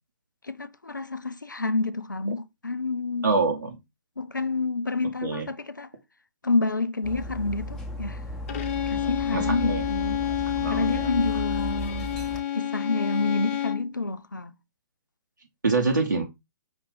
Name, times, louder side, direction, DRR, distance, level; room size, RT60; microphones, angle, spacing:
voice 1, 0.5-3.3 4.2-5.9 6.4-8.2 8.9-10.2 10.7-12.1 12.5-14.5, left 3 dB, 90° left, 0.4 m, -28 dB
voice 2, 3.2-3.8 5.2-5.5 9.3-9.9 10.6-11.1 13.2-13.4 15.6-16.2, right 3 dB, 80° right, 1.1 m, -26 dB
Dog, 7.0-12.4, equal, 5° left, 0.7 m, -36 dB
Bowed string instrument, 8.5-13.9, left 11 dB, 40° left, 0.7 m, -29 dB
5.3 x 2.6 x 3.6 m
figure-of-eight pair, 125°, 10 cm